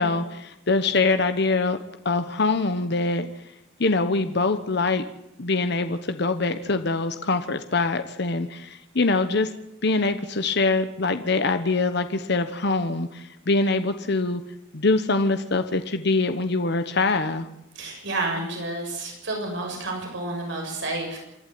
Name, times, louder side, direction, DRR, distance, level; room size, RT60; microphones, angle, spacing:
voice 1, 0.0-1.8 2.0-3.3 3.8-5.0 5.4-9.5 9.8-14.4 14.7-17.5, left 3 dB, 55° left, 9 dB, 1.1 m, -24 dB
voice 2, 17.7-21.2, right 2 dB, 60° right, 1 dB, 6.8 m, -30 dB
27.0 x 12.0 x 9.4 m, 0.82 s
head